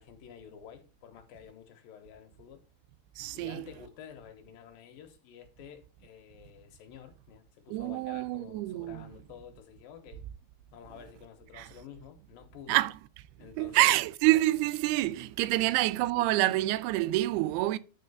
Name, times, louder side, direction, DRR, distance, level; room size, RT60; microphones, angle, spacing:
voice 1, 0.0-2.6 3.3-10.2 10.7-12.8 13.4-13.9 15.6-15.7, left 9 dB, 75° left, 2.5 m, -50 dB
voice 2, 3.2-3.7 7.7-9.0 11.5-11.7 12.7-12.9 13.6-17.8, right 17 dB, 90° right, 2.6 m, -27 dB
10.0 x 4.4 x 5.4 m
omnidirectional pair, 4.5 m